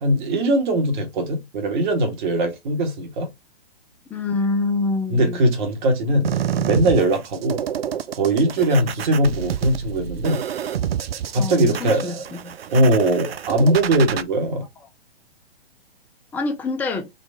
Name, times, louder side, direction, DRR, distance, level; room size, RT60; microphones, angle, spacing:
voice 1, 0.0-3.3 5.1-7.6 8.2-10.4 11.3-12.2 12.7-14.6, right 1 dB, 45° right, 2.0 m, -20 dB
voice 2, 4.1-5.4 11.4-12.2 12.4-12.5 16.3-17.1, left 3 dB, 5° left, 0.5 m, -25 dB
sound 1, 6.2-14.2, right 9 dB, 70° right, 0.6 m, -28 dB
4.2 x 3.0 x 3.5 m
figure-of-eight pair, 120°, 31 cm